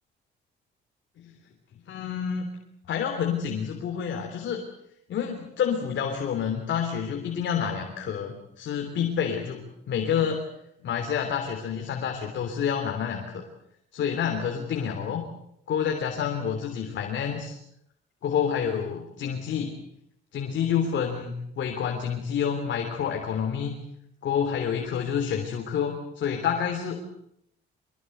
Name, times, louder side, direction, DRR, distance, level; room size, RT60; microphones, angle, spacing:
voice 1, 1.9-2.5 2.9-4.6 5.1-10.4 10.8-13.4 13.9-15.2 15.7-17.5 18.2-19.8 20.3-23.7 24.2-27.0, left 7 dB, 70° left, 3 dB, 3.4 m, -28 dB
24.0 x 22.5 x 8.0 m, 0.76 s
cardioid pair, 90°, 20 cm